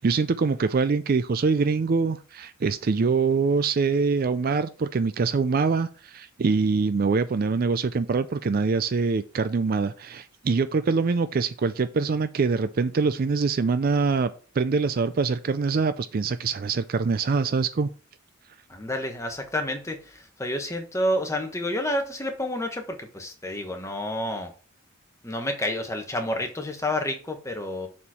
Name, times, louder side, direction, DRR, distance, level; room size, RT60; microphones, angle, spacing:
voice 1, 0.0-14.3 14.6-17.9, right 4 dB, 45° right, 0.4 m, -24 dB
voice 2, 18.7-24.5 25.2-27.9, left 1 dB, 15° left, 1.1 m, -29 dB
7.1 x 4.4 x 4.8 m
head